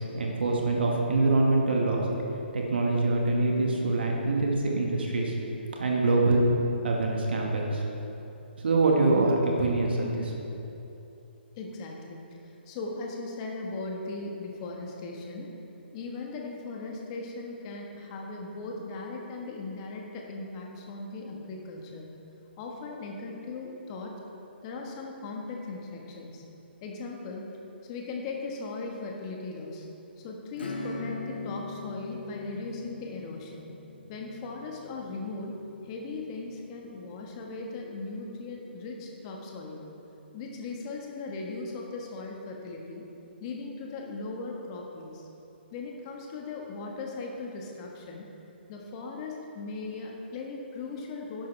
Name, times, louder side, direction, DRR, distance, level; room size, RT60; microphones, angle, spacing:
voice 1, 0.0-2.1 2.5-5.3 5.8-6.4 6.8-7.8 8.6-10.3, right 2 dB, 65° right, -1 dB, 1.8 m, -25 dB
voice 2, 11.6-15.5 15.9-22.1 22.6-24.1 24.6-26.4 26.8-27.5 27.9-29.8 30.2-33.7 34.1-39.9 40.3-43.0 43.4-45.3 45.7-48.3 48.7-51.5, left 3 dB, 30° left, 0 dB, 1.6 m, -38 dB
Acoustic guitar / Strum, 30.5-36.8, left 3 dB, 65° left, 1.5 m, -41 dB
12.5 x 10.5 x 3.5 m, 3.0 s
figure-of-eight pair, 135°, 6 cm